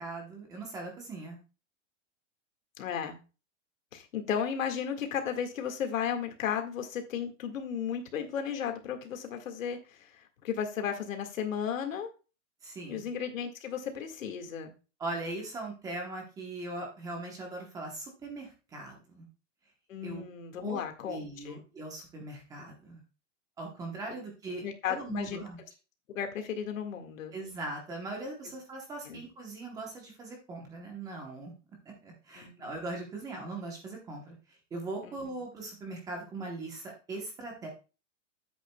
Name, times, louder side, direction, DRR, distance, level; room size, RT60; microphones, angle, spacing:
voice 1, 0.0-1.4 12.6-13.0 15.0-19.3 20.0-20.2 20.6-23.0 23.6-25.6 27.3-31.5 32.0-34.3 34.7-37.7, right 2 dB, 10° right, 1 dB, 1.0 m, -40 dB
voice 2, 2.8-3.2 3.9-12.1 12.9-14.7 19.9-21.6 24.6-25.4 26.1-27.3 29.1-29.2 32.4-32.5 35.0-35.2, left 8 dB, 90° left, 5 dB, 1.9 m, -34 dB
10.0 x 8.0 x 2.3 m, 0.33 s
supercardioid pair, 175°, 39 cm